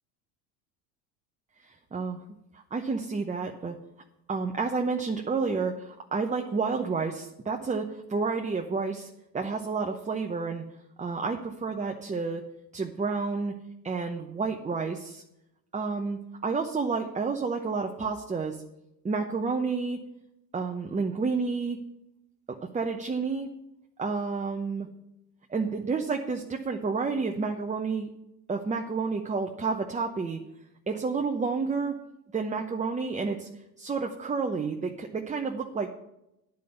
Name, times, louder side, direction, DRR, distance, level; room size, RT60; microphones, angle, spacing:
voice 1, 2.7-3.8 4.3-10.6 11.0-12.4 12.7-13.5 13.8-15.2 15.7-18.6 19.0-20.0 20.5-21.8 22.7-23.5 24.0-24.9 25.5-28.1 28.5-30.4 30.9-32.0 32.3-33.5 33.8-35.9, right 4 dB, 15° right, 2 dB, 0.9 m, -30 dB
10.0 x 5.6 x 8.0 m, 0.86 s
hypercardioid pair, 85°, 50 cm